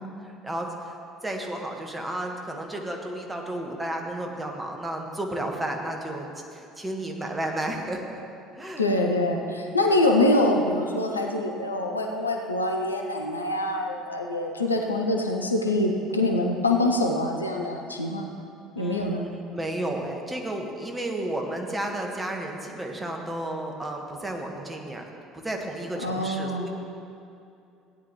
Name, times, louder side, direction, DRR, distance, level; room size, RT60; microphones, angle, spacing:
voice 1, 0.2-1.0 1.2-8.2 8.5-8.9 18.8-25.0 25.3-26.7, right 1 dB, 15° right, 1 dB, 1.5 m, -32 dB
voice 2, 8.8-18.3 18.8-19.3 26.0-26.7, left 1 dB, 85° left, 2 dB, 0.7 m, -25 dB
16.5 x 10.0 x 3.2 m, 2.7 s
figure-of-eight pair, 60°, 0 cm